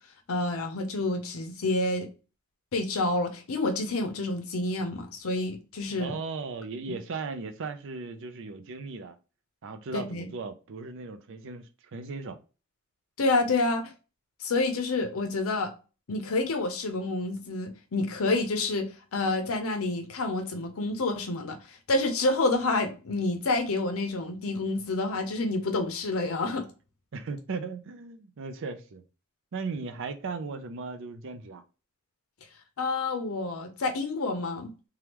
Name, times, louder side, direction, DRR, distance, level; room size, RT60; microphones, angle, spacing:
voice 1, 0.3-2.1 2.7-6.1 9.9-10.3 13.2-13.9 14.4-15.7 16.1-26.7 32.8-34.7, left 2 dB, 70° left, 0.6 m, -28 dB
voice 2, 5.9-9.2 9.6-12.4 27.1-29.0 29.5-31.6, right 4 dB, 60° right, 0.5 m, -37 dB
3.4 x 2.3 x 2.9 m
head